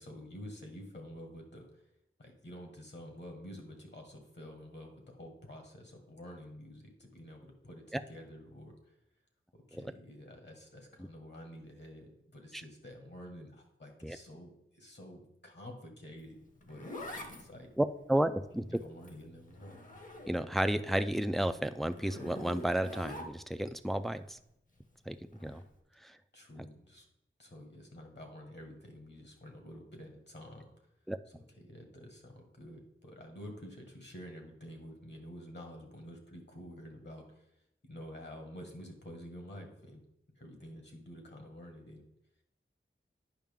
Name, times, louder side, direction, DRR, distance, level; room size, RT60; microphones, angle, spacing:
voice 1, 0.0-1.9 2.2-8.9 9.7-16.4 16.7-17.7 18.7-19.8 26.3-27.1 27.4-30.7 31.6-37.5 37.8-40.0 40.4-42.1, equal, 55° left, 3 dB, 1.8 m, -49 dB
Zipper (clothing), 16.2-20.7 21.0-23.7 25.3-25.6, left 1 dB, 40° left, 1.1 m, -46 dB
voice 2, 17.8-18.6 20.3-24.4 25.1-25.6 26.0-26.2 26.6-26.7 31.1-31.2, right 1 dB, ahead, 9 dB, 0.4 m, -32 dB
9.0 x 5.6 x 3.6 m, 0.80 s
wide cardioid pair, 70°, 21 cm